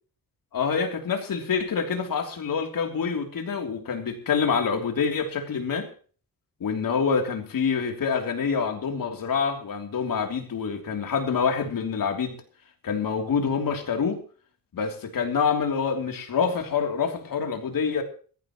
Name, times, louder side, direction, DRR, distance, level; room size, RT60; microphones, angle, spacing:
voice 1, 0.5-5.9 6.6-12.4 12.8-14.2 14.7-18.0, left 6 dB, 65° left, 3 dB, 3.2 m, -26 dB
21.0 x 14.0 x 3.1 m, 0.42 s
wide cardioid pair, 180°, 36 cm